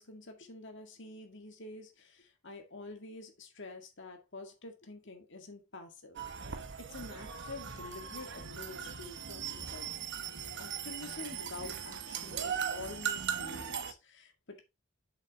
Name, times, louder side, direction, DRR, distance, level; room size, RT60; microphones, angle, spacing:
voice 1, 0.0-6.2 6.8-10.1 10.6-14.6, left 3 dB, 60° left, 2.1 m, -48 dB
sound 1, 6.2-13.9, right 7 dB, 55° right, 1.0 m, -39 dB
7.4 x 6.4 x 3.6 m
head